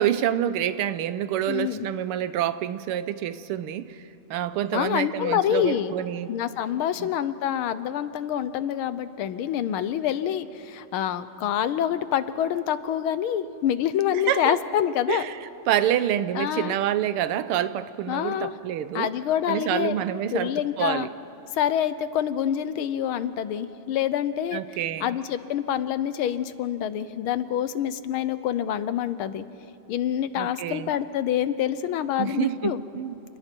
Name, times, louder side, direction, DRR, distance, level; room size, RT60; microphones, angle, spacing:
voice 1, 0.0-4.0 4.3-6.3 7.0-7.1 14.1-14.6 15.1-15.4 15.7-19.1 19.5-21.1 24.5-25.2 30.4-30.9 32.2-33.1, right 11 dB, 85° right, 14 dB, 1.7 m, -27 dB
voice 2, 1.5-1.9 4.7-5.9 6.3-15.3 16.3-16.8 18.1-18.5 18.9-20.0 20.3-21.1 21.5-24.6 25.0-29.4 29.9-32.8, left 10 dB, 75° left, 13 dB, 1.6 m, -26 dB
29.5 x 28.0 x 4.5 m, 2.9 s
omnidirectional pair, 2.4 m